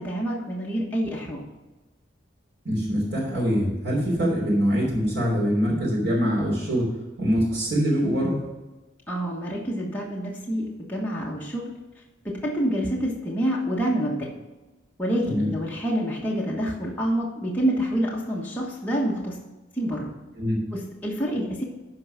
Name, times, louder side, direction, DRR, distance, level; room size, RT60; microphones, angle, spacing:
voice 1, 0.0-1.4 9.1-11.7 12.2-14.3 15.0-19.4 19.8-20.1 20.7-21.6, equal, 10° left, -4 dB, 1.3 m, -27 dB
voice 2, 2.6-6.9 7.2-8.3 15.2-15.5 20.4-20.6, equal, 80° right, -8 dB, 3.4 m, -23 dB
12.5 x 4.6 x 5.7 m, 1.2 s
head